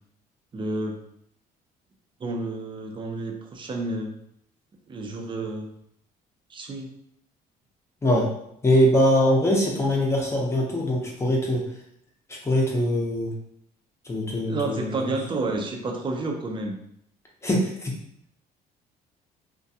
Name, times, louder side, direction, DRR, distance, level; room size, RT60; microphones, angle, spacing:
voice 1, 0.5-1.0 2.2-4.1 4.9-5.7 6.5-6.9 14.5-16.8, right 2 dB, 30° right, 2 dB, 0.5 m, -30 dB
voice 2, 8.6-11.6 12.3-13.3 14.1-15.0 17.4-18.0, equal, 15° left, -2 dB, 0.6 m, -22 dB
2.3 x 2.2 x 2.7 m, 0.72 s
cardioid pair, 110°, 17 cm